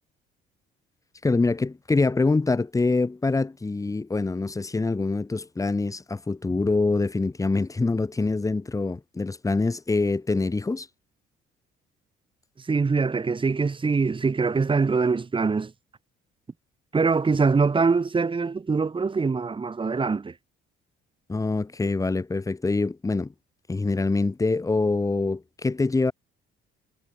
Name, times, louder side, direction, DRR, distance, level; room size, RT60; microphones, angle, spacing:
voice 1, 1.2-10.9 21.3-23.3 23.7-26.1, left 3 dB, 15° left, 2.4 m, -25 dB
voice 2, 12.6-15.7 16.9-20.4, right 4 dB, 25° right, 7.4 m, -23 dB
cardioid pair, 125°, 20 cm